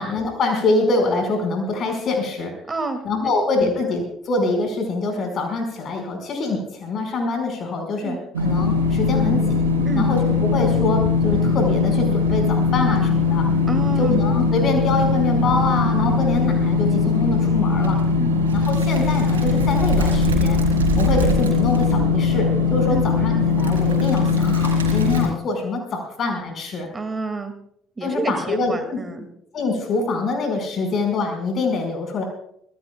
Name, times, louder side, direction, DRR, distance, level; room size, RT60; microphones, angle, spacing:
voice 1, 0.0-2.5 3.1-9.5 9.9-10.2 10.5-13.5 14.0-18.0 18.5-20.6 21.0-26.9 28.0-29.0 29.5-32.2, left 3 dB, 50° left, 4 dB, 5.2 m, -24 dB
voice 2, 2.7-3.0 3.6-3.7 8.0-8.2 9.9-10.1 13.7-14.2 18.2-18.3 22.9-23.1 26.9-27.5 28.0-29.3, right 3 dB, 25° right, 6 dB, 2.4 m, -28 dB
sound 1, 8.3-25.3, left 4 dB, 85° right, 3.2 m, -20 dB
26.0 x 16.0 x 2.4 m, 0.70 s
figure-of-eight pair, 55°, 0 cm